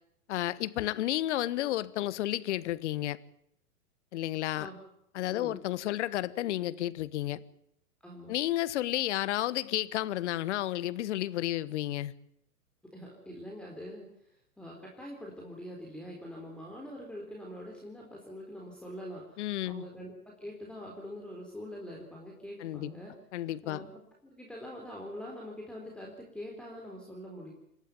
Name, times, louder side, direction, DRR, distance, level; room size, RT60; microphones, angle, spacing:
voice 1, 0.3-3.2 4.1-4.7 5.1-7.4 8.3-12.1 19.4-19.9 22.6-22.9 23.3-23.8, left 14 dB, 50° left, 1.3 m, -32 dB
voice 2, 8.0-8.4 12.9-14.1 14.6-23.1 23.6-23.9 24.2-27.5, equal, ahead, 4.2 m, -44 dB
28.0 x 12.0 x 9.5 m
figure-of-eight pair, 115°, 45 cm